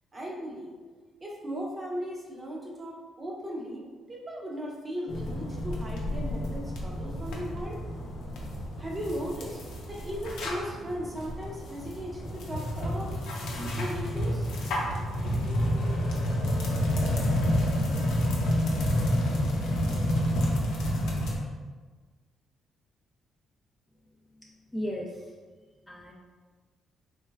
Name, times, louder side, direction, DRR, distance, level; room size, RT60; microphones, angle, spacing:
voice 1, 0.1-0.8 1.2-7.8 8.8-9.6 9.9-14.5, equal, 25° right, -2 dB, 0.7 m, -37 dB
sound 1, 5.1-21.4, equal, 85° left, 0.6 m, -29 dB
voice 2, 24.7-25.3 25.9-26.1, equal, 10° left, -3 dB, 0.4 m, -35 dB
3.3 x 3.1 x 2.2 m, 1.4 s
cardioid pair, 90°, 0 cm